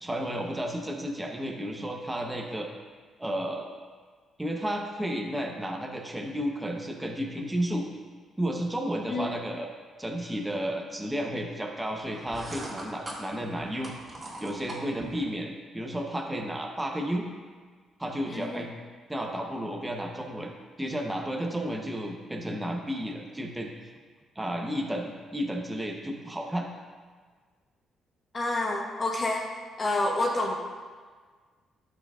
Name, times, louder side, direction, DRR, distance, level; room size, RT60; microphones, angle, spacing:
voice 1, 0.0-2.7 3.2-3.7 4.4-7.8 8.4-9.7 10.0-13.9 14.4-17.3 18.0-18.7 19.1-20.5 20.8-23.7 24.4-26.7, equal, 10° right, 1 dB, 0.9 m, -32 dB
sound 1, 12.0-15.3, right 1 dB, 35° right, 2.1 m, -41 dB
voice 2, 18.3-18.6 28.3-29.5 29.8-30.6, left 2 dB, 35° left, 0 dB, 1.1 m, -28 dB
13.0 x 5.9 x 2.5 m, 1.5 s
cardioid pair, 90°, 0 cm